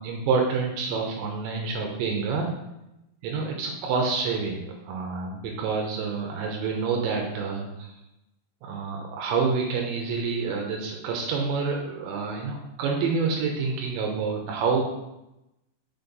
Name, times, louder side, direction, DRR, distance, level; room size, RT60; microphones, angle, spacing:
voice 1, 0.0-2.5 3.2-7.9 8.6-14.8, right 5 dB, 80° right, 1 dB, 3.1 m, -28 dB
7.1 x 4.4 x 5.2 m, 0.91 s
omnidirectional pair, 5.3 m